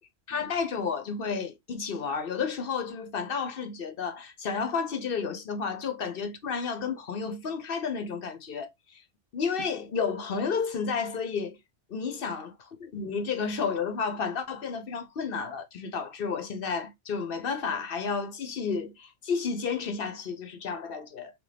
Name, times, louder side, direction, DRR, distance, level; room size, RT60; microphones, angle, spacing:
voice 1, 0.3-9.0 9.3-11.6 11.9-12.5 12.8-21.3, left 5 dB, 55° left, 0.9 m, -31 dB
3.7 x 3.4 x 3.3 m
omnidirectional pair, 1.2 m